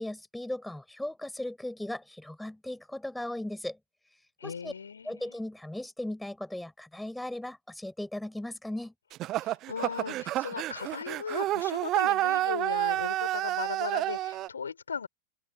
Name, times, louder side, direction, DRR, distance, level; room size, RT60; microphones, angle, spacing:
voice 1, 0.0-3.8 4.4-4.7 5.0-8.9, left 1 dB, 5° left, 7.7 m, -37 dB
voice 2, 4.4-5.4 9.4-15.1, left 6 dB, 70° left, 5.6 m, -37 dB
sound 1, 9.1-14.5, right 15 dB, 35° right, 1.3 m, -29 dB
open air
figure-of-eight pair, 90°, 0 cm